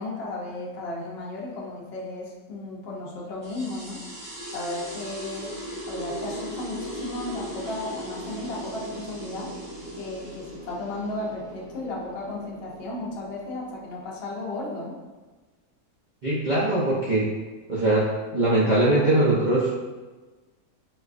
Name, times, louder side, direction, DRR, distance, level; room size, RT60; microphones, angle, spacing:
voice 1, 0.0-4.0 4.5-5.6 5.9-9.5 10.0-15.0, left 2 dB, 60° left, -4 dB, 0.7 m, -34 dB
sound 1, 3.4-14.4, right 1 dB, 35° right, 1.2 m, -38 dB
voice 2, 16.2-17.3 17.7-19.8, right 2 dB, 75° right, -8 dB, 0.4 m, -21 dB
4.0 x 2.4 x 2.4 m, 1.3 s
omnidirectional pair, 1.6 m